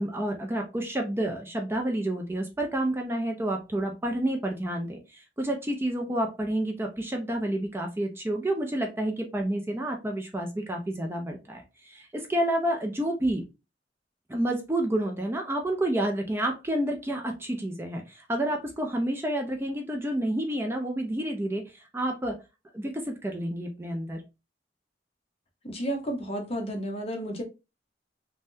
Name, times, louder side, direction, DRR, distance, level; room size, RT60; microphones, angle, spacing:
voice 1, 0.0-13.4 14.3-22.4 22.7-24.2, right 1 dB, 15° right, 0.4 m, -29 dB
voice 2, 25.6-27.4, right 1 dB, 35° left, 0.8 m, -32 dB
3.4 x 2.2 x 2.6 m
head